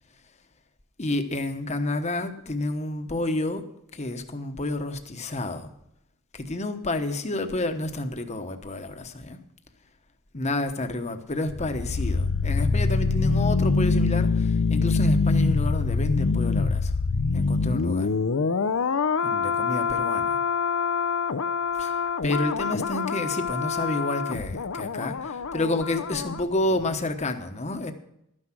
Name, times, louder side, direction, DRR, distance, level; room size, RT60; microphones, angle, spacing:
voice 1, 1.0-3.6 3.9-5.7 6.3-9.4 10.3-16.9 17.3-18.1 19.2-20.4 21.8-27.9, left 2 dB, 30° left, 7 dB, 1.1 m, -30 dB
sound 1, 11.5-26.4 26.7-26.9, left 4 dB, 70° left, 0.6 m, -25 dB
12.5 x 9.8 x 5.9 m, 0.78 s
head